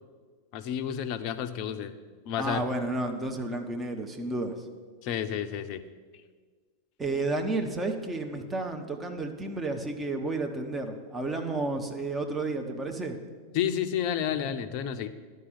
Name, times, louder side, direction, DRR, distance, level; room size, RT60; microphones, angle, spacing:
voice 1, 0.5-2.0 2.3-2.6 5.0-5.8 13.5-15.1, left 9 dB, 45° left, 10 dB, 0.7 m, -30 dB
voice 2, 2.4-4.6 7.0-13.2, right 2 dB, 15° right, 3 dB, 1.2 m, -31 dB
11.5 x 5.3 x 8.1 m, 1.5 s
figure-of-eight pair, 90°, 0 cm